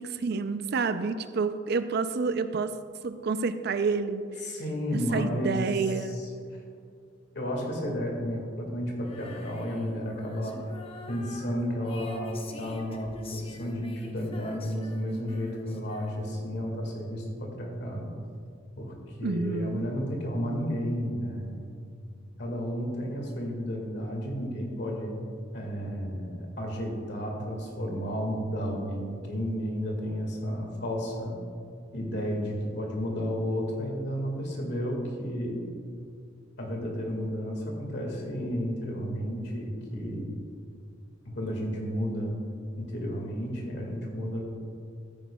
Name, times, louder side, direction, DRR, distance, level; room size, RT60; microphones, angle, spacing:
voice 1, 0.0-2.7 3.0-4.2 5.1-6.2 19.2-19.8, right 4 dB, 60° right, 11 dB, 0.5 m, -29 dB
voice 2, 4.4-5.7 6.0-6.3 7.3-10.6 11.1-18.1 18.8-21.8 22.4-25.1 25.5-31.4 31.9-35.6 36.6-40.3 41.3-42.3 42.8-44.4, equal, 65° left, 0 dB, 1.9 m, -32 dB
Female singing, 9.0-16.5, left 1 dB, 30° left, 0.8 m, -46 dB
13.5 x 9.2 x 2.3 m, 2.3 s
head